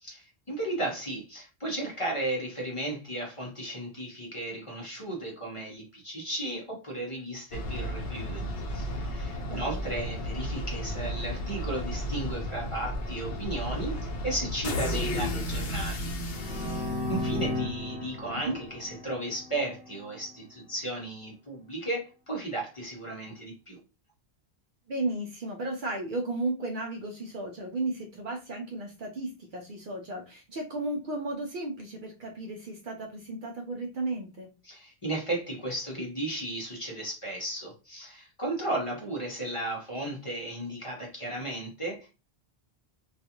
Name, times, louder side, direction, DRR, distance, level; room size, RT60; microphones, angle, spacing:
voice 1, 0.0-8.5 8.7-16.1 16.5-16.8 17.1-23.8 34.6-42.1, right 1 dB, 35° left, -2 dB, 0.7 m, -35 dB
sound 1, 7.5-17.8, equal, 65° left, 0.8 m, -33 dB
sound 2, 16.3-20.0, left 2 dB, 10° right, 0.5 m, -35 dB
voice 2, 24.9-34.5, right 2 dB, 60° right, 1 dB, 0.6 m, -34 dB
2.4 x 2.3 x 2.8 m, 0.31 s
omnidirectional pair, 1.1 m